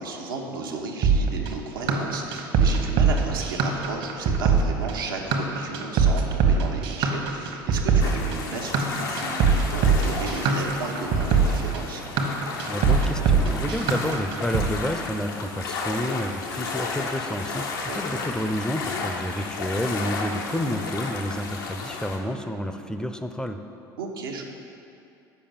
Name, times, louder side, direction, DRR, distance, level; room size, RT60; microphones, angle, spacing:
voice 1, 0.0-12.0 17.9-18.2 24.0-24.4, right 3 dB, 85° right, 0 dB, 1.0 m, -34 dB
sound 1, 1.0-14.7, right 5 dB, 60° right, 1.1 m, -22 dB
sound 2, 8.0-22.2, left 4 dB, 80° left, 0.9 m, -33 dB
voice 2, 12.6-23.6, equal, 5° left, 7 dB, 0.5 m, -30 dB
6.8 x 5.2 x 7.2 m, 2.7 s
hypercardioid pair, 75°, 11 cm